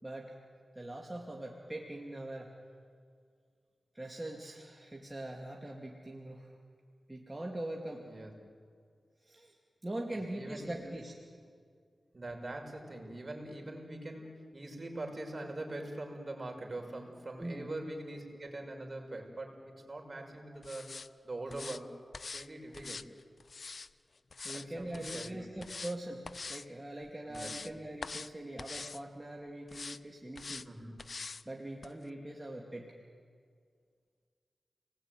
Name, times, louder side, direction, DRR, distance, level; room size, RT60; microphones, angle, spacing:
voice 1, 0.0-0.3 0.7-2.5 3.9-6.5 7.1-8.0 9.2-9.5 9.8-11.1 17.4-17.7 24.4-26.2 26.5-30.7 31.4-32.9, right 1 dB, 20° right, -1 dB, 2.8 m, -42 dB
voice 2, 10.3-10.9 12.1-21.0 21.2-21.9 22.3-23.1 24.5-25.5 27.3-27.6 30.7-31.0, right 1 dB, 45° right, 2 dB, 5.8 m, -43 dB
sound 1, 20.6-21.1 21.5-21.8 22.1-22.5 22.7-23.9 24.3-24.7 24.9-25.3 25.6-26.0 26.2-26.6 27.1-27.7 28.0-28.3 28.6-29.0 29.7-30.0 30.3-30.7 31.0-31.4 31.8-31.9, left 4 dB, 60° left, 0.7 m, -43 dB
29.5 x 20.0 x 9.4 m, 2.1 s
cardioid pair, 50°, 0 cm